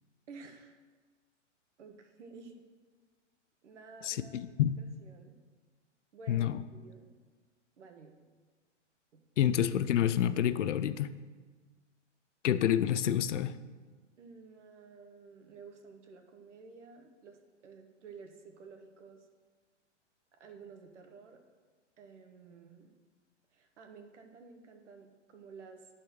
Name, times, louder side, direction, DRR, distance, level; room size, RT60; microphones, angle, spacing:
voice 1, 0.3-0.7 1.8-2.6 3.6-5.3 6.1-7.1 7.8-8.1 9.1-9.2 14.2-19.2 20.4-21.4 22.0-22.9 23.5-25.9, right 4 dB, 70° right, 5 dB, 1.4 m, -52 dB
voice 2, 4.0-4.8 6.3-6.6 9.4-11.1 12.4-13.5, left 10 dB, 75° left, 13 dB, 0.6 m, -28 dB
11.0 x 4.3 x 6.5 m, 1.4 s
hypercardioid pair, 120°, 36 cm